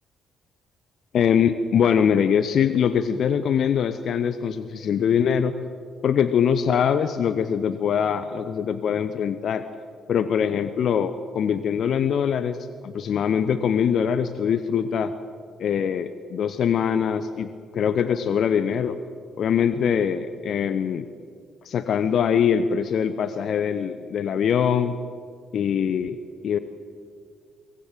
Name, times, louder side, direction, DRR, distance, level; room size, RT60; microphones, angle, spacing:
voice 1, 1.1-5.5 6.0-9.6 10.1-12.6 12.8-15.1 15.6-19.0 19.4-21.1 21.6-25.0 25.5-26.2 26.4-26.6, left 7 dB, 50° left, 12 dB, 0.8 m, -23 dB
23.0 x 19.5 x 7.7 m, 2.2 s
figure-of-eight pair, 45°, 0 cm